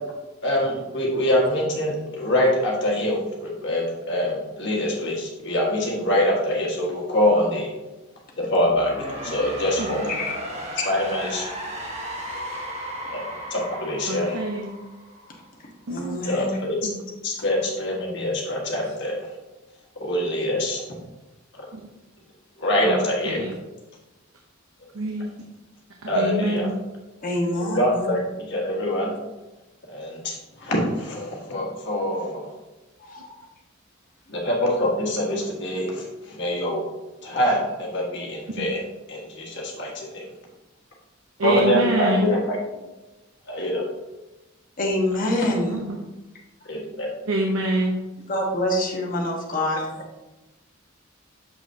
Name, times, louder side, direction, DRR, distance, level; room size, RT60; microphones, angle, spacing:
voice 1, 0.4-7.7 8.4-10.1 10.8-11.4 13.1-14.4 16.2-16.8 17.2-19.3 20.0-20.8 21.6-21.7 22.6-23.4 26.1-26.7 27.6-29.1 29.9-32.5 34.3-36.8 37.2-40.2 41.4-42.6 43.5-43.9 46.7-47.1, left 1 dB, 60° left, -2 dB, 1.6 m, -24 dB
sound 1, 8.6-15.5, equal, 35° right, 1.1 m, -35 dB
voice 2, 14.1-14.7 15.9-16.5 16.8-17.0 21.7-21.8 22.8-23.5 24.9-25.3 26.0-26.7 38.6-38.7 41.4-42.3 45.5-46.0 47.3-48.0, right 1 dB, 85° right, 1 dB, 0.7 m, -26 dB
voice 3, 15.9-16.6 27.2-28.1 33.0-33.4 44.8-45.8 48.3-50.2, left 1 dB, 45° left, -1 dB, 1.2 m, -26 dB
7.0 x 5.9 x 2.8 m, 1.1 s
head